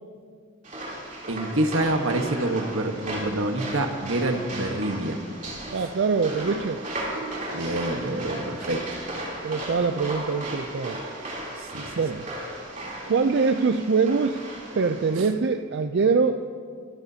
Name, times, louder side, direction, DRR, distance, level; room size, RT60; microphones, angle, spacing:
sound 1, 0.6-15.3, right 1 dB, 40° right, 3.3 m, -36 dB
voice 1, 1.3-5.2 5.8-5.9 7.5-8.8 11.6-11.9 15.2-15.3, right 1 dB, 80° right, 5 dB, 1.3 m, -27 dB
voice 2, 5.7-6.8 9.4-11.0 12.0-12.2 13.1-14.4 14.8-16.4, right 4 dB, 60° right, 7 dB, 0.4 m, -23 dB
23.0 x 13.5 x 2.8 m, 2.1 s
head